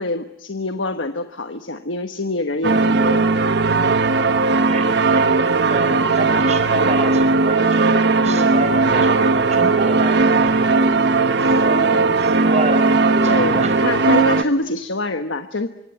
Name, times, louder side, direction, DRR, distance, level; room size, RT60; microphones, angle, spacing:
voice 1, 0.0-3.3 8.2-8.5 11.9-12.0 13.3-15.7, left 2 dB, 80° left, 8 dB, 1.3 m, -25 dB
sound 1, 2.6-14.4, right 3 dB, 60° right, 1.2 m, -17 dB
voice 2, 4.7-10.8 11.4-13.8, right 2 dB, 35° right, 8 dB, 5.0 m, -28 dB
26.0 x 25.0 x 8.9 m, 0.82 s
head